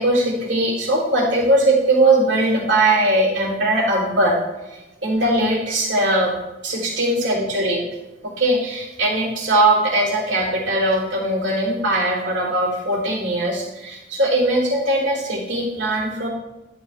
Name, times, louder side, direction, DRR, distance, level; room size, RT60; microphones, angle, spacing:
voice 1, 0.0-4.4 4.7-6.3 6.6-7.9 8.2-16.3, right 1 dB, 75° right, -7 dB, 3.7 m, -20 dB
12.0 x 9.8 x 3.6 m, 1.1 s
head